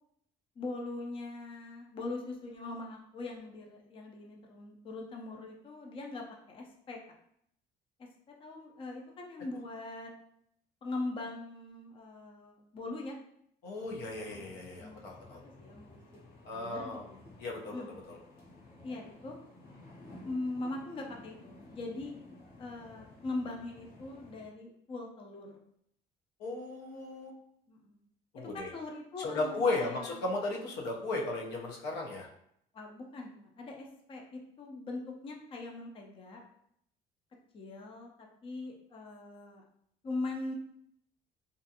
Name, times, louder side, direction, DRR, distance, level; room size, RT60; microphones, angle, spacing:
voice 1, 0.6-7.0 8.4-10.1 10.8-13.2 14.3-14.5 14.8-15.0 15.4-15.9 16.5-17.2 17.7-17.9 18.8-19.4 20.2-22.2 22.6-25.5 27.7-28.0 28.4-30.2 32.7-36.4 37.5-39.6 40.0-40.5, left 2 dB, 30° left, 1 dB, 0.4 m, -41 dB
voice 2, 13.6-15.4 16.4-17.0 17.4-18.2 26.4-27.3 28.3-28.7 29.2-32.3, left 2 dB, 80° left, 0 dB, 0.6 m, -35 dB
sound 1, 13.8-24.5, left 2 dB, 55° left, 1.1 m, -54 dB
2.5 x 2.3 x 2.7 m, 0.71 s
cardioid pair, 110°, 17 cm